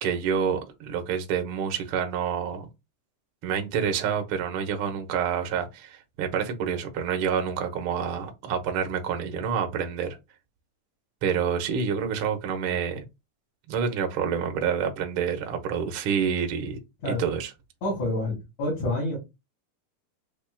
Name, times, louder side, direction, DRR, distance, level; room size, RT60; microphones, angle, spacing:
voice 1, 0.0-2.7 3.4-10.2 11.2-13.0 13.7-16.8 17.1-17.5, right 7 dB, 70° right, 1.3 m, -28 dB
voice 2, 17.8-19.2, left 1 dB, 65° left, 3.6 m, -28 dB
7.1 x 3.1 x 2.2 m
omnidirectional pair, 3.7 m